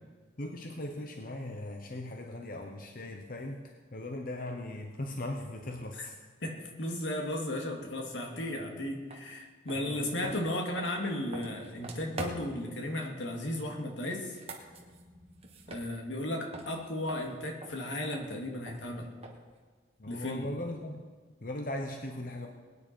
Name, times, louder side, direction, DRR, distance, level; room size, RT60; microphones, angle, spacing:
voice 1, 0.4-6.2 9.7-10.4 20.0-21.0 21.4-22.5, left 1 dB, 45° left, 3 dB, 1.0 m, -39 dB
voice 2, 6.4-14.4 15.7-19.1 20.1-20.5, left 1 dB, 80° left, 1 dB, 2.4 m, -35 dB
sound 1, 9.1-9.2 9.6-12.7 14.2-16.3 16.5-19.6, right 2 dB, 30° right, 1.7 m, -45 dB
21.5 x 9.8 x 4.6 m, 1.5 s
head